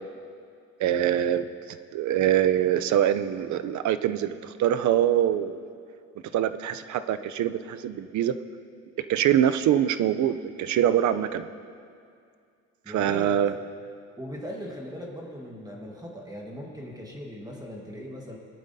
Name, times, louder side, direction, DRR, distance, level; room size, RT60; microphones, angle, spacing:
voice 1, 0.8-1.4 1.9-5.7 6.3-8.3 9.1-11.5 12.9-13.5, right 10 dB, 70° right, 12 dB, 0.6 m, -24 dB
voice 2, 12.8-13.6 14.2-18.4, equal, 10° right, -1 dB, 1.4 m, -39 dB
18.5 x 12.0 x 2.7 m, 2.3 s
cardioid pair, 90°, 30 cm